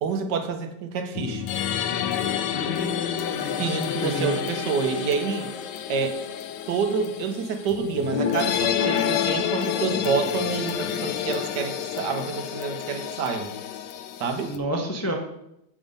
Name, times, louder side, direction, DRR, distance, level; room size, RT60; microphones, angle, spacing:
voice 1, 0.0-1.4 3.6-5.5 5.9-6.2 6.7-13.5 14.2-14.5, right 5 dB, 65° right, 7 dB, 1.6 m, -28 dB
sound 1, 1.1-14.6, left 9 dB, 70° left, 1.2 m, -29 dB
voice 2, 2.5-3.6 4.0-4.3 14.4-15.2, equal, 15° left, 1 dB, 0.6 m, -30 dB
8.3 x 5.5 x 5.2 m, 0.81 s
omnidirectional pair, 2.0 m